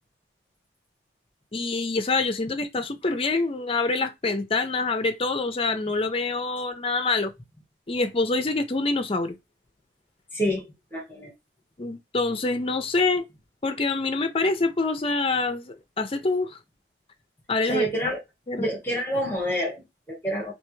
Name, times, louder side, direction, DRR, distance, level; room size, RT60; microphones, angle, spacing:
voice 1, 1.5-7.3 7.9-9.4 11.8-13.2 13.6-16.6 17.5-17.9 18.5-18.7, left 3 dB, 30° left, 0.5 m, -26 dB
voice 2, 10.3-11.3 17.7-18.2 18.6-20.5, equal, 10° left, 1.2 m, -28 dB
3.3 x 2.8 x 3.1 m
head